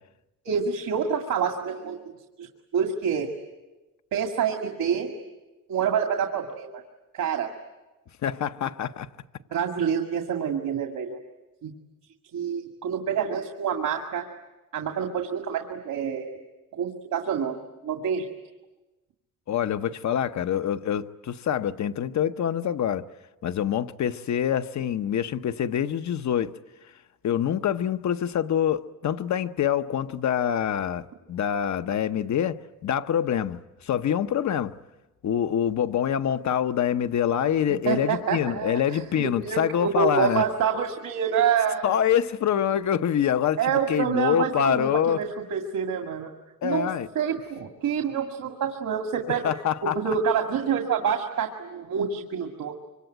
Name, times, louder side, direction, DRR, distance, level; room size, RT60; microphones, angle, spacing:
voice 1, 0.4-2.0 2.4-2.5 2.7-3.3 4.1-5.1 5.7-6.8 7.1-7.5 9.5-11.2 11.6-11.7 12.3-14.3 14.7-16.3 16.7-17.6 17.8-18.3 37.9-42.0 43.6-46.3 46.6-46.9 47.1-49.5 49.8-52.7, right 7 dB, 75° right, 2.3 m, -27 dB
voice 2, 8.2-9.1 19.5-23.0 23.4-26.5 27.2-34.7 35.2-40.4 41.8-43.6 43.9-45.2 46.6-47.1 49.4-50.0, left 9 dB, 60° left, 0.9 m, -25 dB
25.5 x 25.0 x 9.2 m
wide cardioid pair, 155°, 32 cm